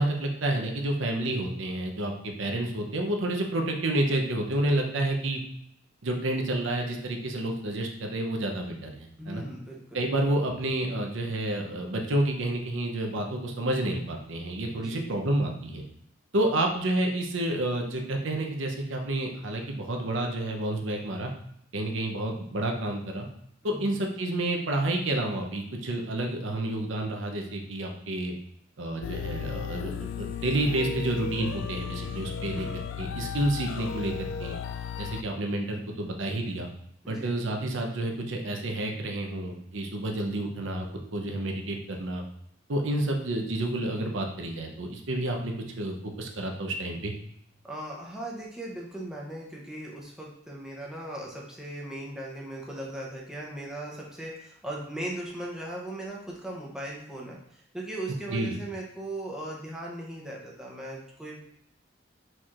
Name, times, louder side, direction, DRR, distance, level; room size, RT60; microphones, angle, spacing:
voice 1, 0.0-5.4 6.0-9.4 9.9-15.8 16.3-21.3 21.7-23.3 23.6-28.3 28.8-29.9 30.2-32.7 33.0-34.6 35.0-36.7 37.1-40.9 41.1-42.2 42.7-47.1 58.3-58.6, right 1 dB, 80° right, 2 dB, 0.7 m, -29 dB
voice 2, 9.2-10.1 14.7-15.2 23.7-24.0 32.4-32.8 37.0-37.4 47.6-61.4, right 1 dB, 5° right, -3 dB, 0.7 m, -38 dB
sound 1, 29.0-35.2, left 7 dB, 75° left, 0.3 m, -35 dB
4.5 x 4.4 x 2.4 m, 0.72 s
head